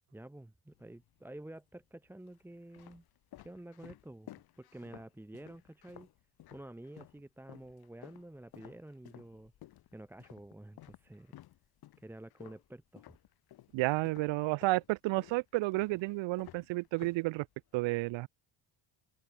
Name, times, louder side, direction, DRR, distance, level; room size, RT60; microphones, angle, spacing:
voice 1, 0.1-3.0 3.4-4.3 4.6-6.1 6.5-9.5 9.9-11.4 12.0-13.2, right 1 dB, 5° right, 2.6 m, -50 dB
sound 1, 0.7-1.4 2.1-7.2 7.5-13.8 14.1-17.8, left 14 dB, 55° left, 6.5 m, -55 dB
voice 2, 13.7-17.5 17.7-18.3, right 21 dB, 90° right, 2.5 m, -31 dB
open air
cardioid pair, 165°, 43 cm